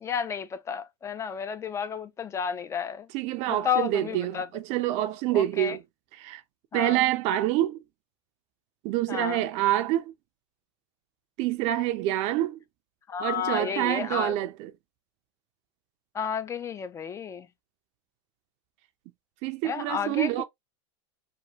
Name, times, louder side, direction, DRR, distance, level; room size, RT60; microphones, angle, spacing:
voice 1, 0.0-3.1 3.5-4.5 5.3-5.8 6.7-7.0 9.1-9.4 13.1-14.3 16.1-17.5 19.6-20.3, left 7 dB, 20° left, 0.3 m, -31 dB
voice 2, 3.1-5.8 6.1-6.4 6.7-7.8 8.8-10.1 11.4-12.6 13.2-14.7 19.4-20.4, right 14 dB, 45° right, 0.4 m, -27 dB
2.9 x 2.3 x 2.7 m
supercardioid pair, 125°, 16 cm